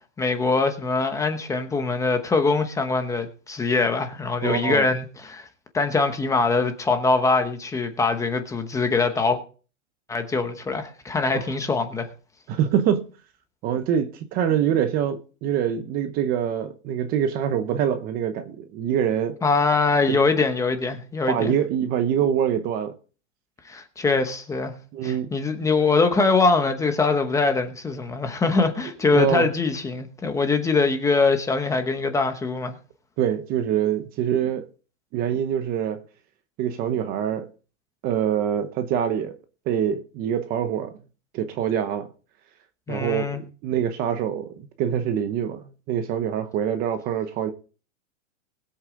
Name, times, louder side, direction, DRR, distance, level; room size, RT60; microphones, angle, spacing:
voice 1, 0.2-5.5 5.7-9.4 10.1-12.1 19.4-21.5 23.6-24.7 25.0-32.7 42.9-43.4, left 4 dB, 10° left, 0.9 m, -23 dB
voice 2, 4.4-4.9 11.3-11.5 12.5-13.1 13.6-19.4 20.1-20.2 21.3-22.9 24.9-25.3 29.1-29.5 33.2-34.7 35.1-36.0 36.6-37.5 38.0-39.4 39.7-40.9 41.3-42.1 42.9-47.5, right 9 dB, 25° right, 0.8 m, -25 dB
20.5 x 8.1 x 3.8 m
supercardioid pair, 160°, 39 cm